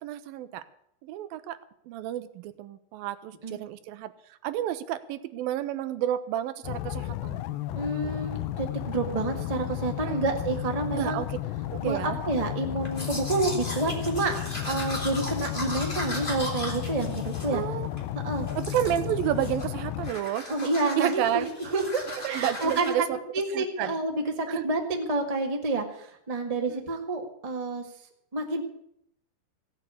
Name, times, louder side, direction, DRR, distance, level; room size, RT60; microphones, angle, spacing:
voice 1, 0.0-0.6 1.0-1.6 1.9-4.1 4.4-7.4 10.0-10.3 10.9-11.4 11.7-12.2 17.5-17.9 18.6-20.5 21.0-21.5 22.2-23.2 23.5-24.0 24.5-24.7 26.7-26.9, right 12 dB, 80° right, 13 dB, 2.5 m, -30 dB
sound 1, 6.6-20.1, left 14 dB, 85° left, 2.6 m, -33 dB
voice 2, 7.7-11.2 11.8-14.4 14.6-17.6 18.2-18.5 20.5-23.1 23.3-27.8 28.3-28.6, right 2 dB, 30° right, 2 dB, 0.6 m, -29 dB
Domestic sounds home sounds, 12.8-18.1 18.5-19.1 19.4-19.8 20.0-22.9, left 1 dB, 15° left, 2.4 m, -37 dB
16.0 x 8.2 x 8.4 m, 0.74 s
omnidirectional pair, 4.2 m